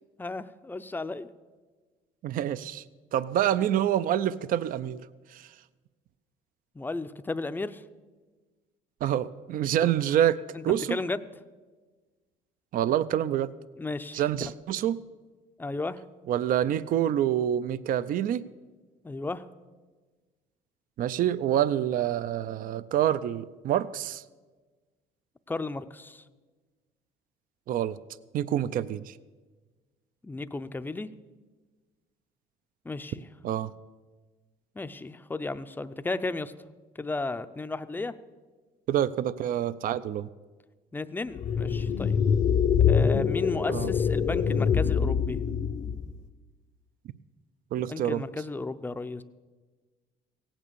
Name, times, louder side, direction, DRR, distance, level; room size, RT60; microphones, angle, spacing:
voice 1, 0.2-1.3 6.8-7.8 9.8-9.9 10.5-10.6 10.9-11.2 13.8-14.2 15.6-16.0 19.0-19.4 25.5-26.2 30.2-31.1 32.8-33.3 34.8-36.5 37.0-38.1 40.9-42.2 42.9-45.4 47.8-49.2, left 3 dB, 10° left, 11 dB, 0.5 m, -34 dB
voice 2, 2.2-2.8 3.1-5.0 5.3-5.5 9.0-10.4 10.6-11.0 12.7-13.5 14.1-15.0 16.3-18.4 21.0-24.2 27.7-28.0 28.3-29.1 33.4-33.7 38.9-40.3 43.7-43.9 47.7-48.2, right 11 dB, 55° right, 16 dB, 0.5 m, -27 dB
sound 1, 41.3-46.2, left 7 dB, 45° left, 0.8 m, -25 dB
17.0 x 8.8 x 6.8 m, 1.4 s
cardioid pair, 110°, 17 cm